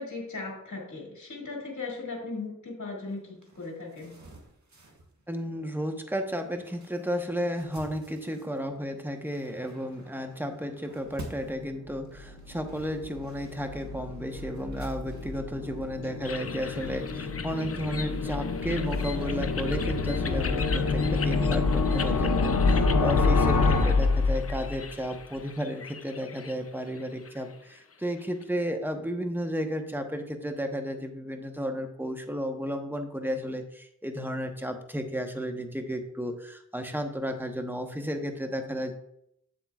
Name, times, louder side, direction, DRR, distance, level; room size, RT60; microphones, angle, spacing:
voice 1, 0.0-4.2, left 3 dB, 65° left, -2 dB, 2.0 m, -37 dB
sound 1, 3.1-21.1, right 2 dB, 65° right, 1.4 m, -51 dB
voice 2, 5.3-38.9, equal, 5° right, 5 dB, 1.0 m, -33 dB
sound 2, 11.9-24.9, left 3 dB, 85° left, 0.6 m, -27 dB
sound 3, 16.2-28.4, left 5 dB, 50° left, 0.6 m, -41 dB
7.7 x 7.5 x 2.4 m, 0.74 s
wide cardioid pair, 45°, 31 cm